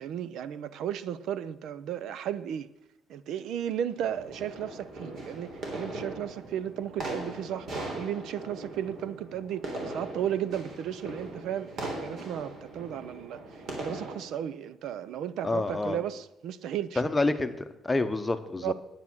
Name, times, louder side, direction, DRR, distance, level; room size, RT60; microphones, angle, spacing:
voice 1, 0.0-2.7 3.1-7.7 7.9-17.0 18.6-18.7, right 10 dB, 70° right, 0.6 m, -34 dB
sound 1, 3.9-14.2, right 2 dB, 55° right, 3.5 m, -39 dB
voice 2, 15.4-16.0 17.0-17.5 17.8-18.7, left 2 dB, 10° left, 0.9 m, -27 dB
9.6 x 9.6 x 6.2 m
cardioid pair, 145°, 0 cm